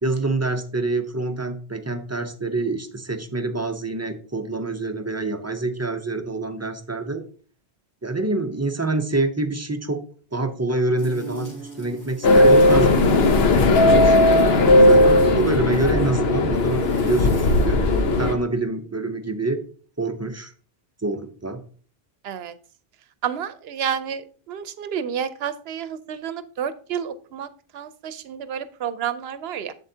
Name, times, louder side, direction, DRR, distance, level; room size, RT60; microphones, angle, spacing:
voice 1, 0.0-7.2 8.0-10.0 10.3-17.8 18.2-19.6 20.0-20.5 21.0-21.6, right 2 dB, 20° right, 6 dB, 0.5 m, -26 dB
sound 1, 11.0-15.6 16.5-17.7, right 2 dB, 15° left, 2.6 m, -39 dB
sound 2, 12.2-18.3, left 2 dB, 75° left, 1.0 m, -16 dB
voice 2, 23.2-29.7, right 8 dB, 75° right, 14 dB, 0.8 m, -30 dB
7.6 x 7.5 x 2.7 m, 0.42 s
omnidirectional pair, 1.1 m